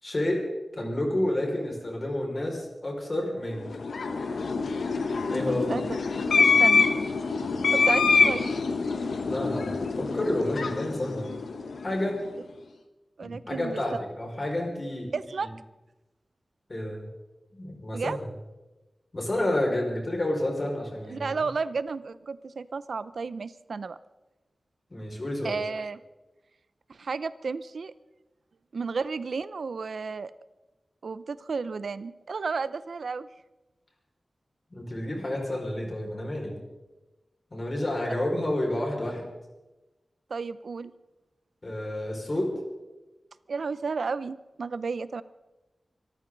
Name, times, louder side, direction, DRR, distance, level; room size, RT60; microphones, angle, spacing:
voice 1, 0.0-3.7 5.3-5.8 9.3-11.3 11.8-12.3 13.2-15.1 15.4-15.5 16.7-17.0 17.6-18.2 19.1-21.4 24.9-25.6 34.7-36.6 37.5-39.3 41.6-42.6, left 1 dB, 35° left, 0 dB, 5.4 m, -30 dB
sound 1, 3.6-12.1, left 4 dB, 90° left, 1.1 m, -25 dB
voice 2, 5.5-5.8 6.4-6.9 7.7-8.5 13.2-13.8 15.1-15.5 17.9-18.2 21.1-24.0 25.4-26.0 26.9-27.9 28.7-30.3 31.0-33.3 40.3-40.9 43.5-45.2, right 4 dB, 80° right, 16 dB, 0.6 m, -32 dB
25.5 x 14.0 x 4.0 m, 1.1 s
wide cardioid pair, 75°, 0 cm